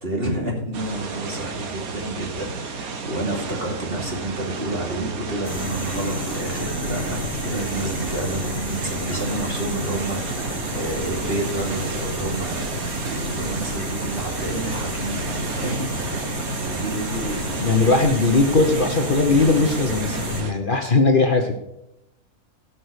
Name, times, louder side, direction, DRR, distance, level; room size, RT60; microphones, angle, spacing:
voice 1, 0.0-17.9, right 1 dB, 45° right, -1 dB, 3.1 m, -30 dB
sound 1, 0.7-20.5, right 5 dB, 85° right, 1.7 m, -32 dB
sound 2, 5.4-20.4, equal, 10° right, 4.3 m, -30 dB
voice 2, 17.6-21.5, left 3 dB, 40° left, 3 dB, 1.2 m, -19 dB
17.5 x 6.2 x 5.2 m, 0.84 s
omnidirectional pair, 1.5 m